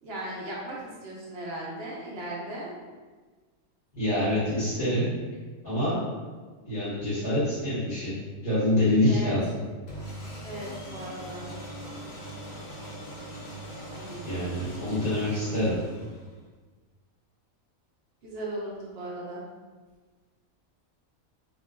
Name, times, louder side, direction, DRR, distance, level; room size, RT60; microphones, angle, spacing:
voice 1, 0.0-2.7 9.1-9.3 10.4-11.5 13.9-14.5 18.2-19.4, right 1 dB, 55° right, -5 dB, 0.8 m, -37 dB
voice 2, 3.9-5.1 5.6-6.0 6.6-8.1 8.4-9.5 14.2-15.8, left 1 dB, 40° left, -17 dB, 1.4 m, -26 dB
sound 1, 9.9-16.4, right 1 dB, 70° left, 1.1 m, -41 dB
3.6 x 2.4 x 2.3 m, 1.4 s
omnidirectional pair, 1.5 m